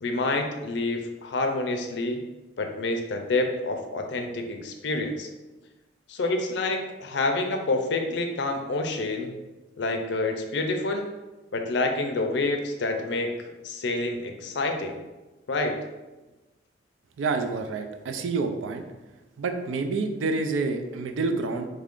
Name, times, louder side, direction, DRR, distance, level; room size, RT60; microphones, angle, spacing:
voice 1, 0.0-2.2 2.6-5.3 6.1-9.4 9.8-11.1 11.5-13.3 13.6-15.0 15.5-15.8, left 2 dB, 65° left, 4 dB, 0.4 m, -28 dB
voice 2, 17.2-18.8 19.4-21.7, right 3 dB, 90° right, 7 dB, 0.4 m, -28 dB
3.2 x 2.5 x 3.6 m, 1.1 s
head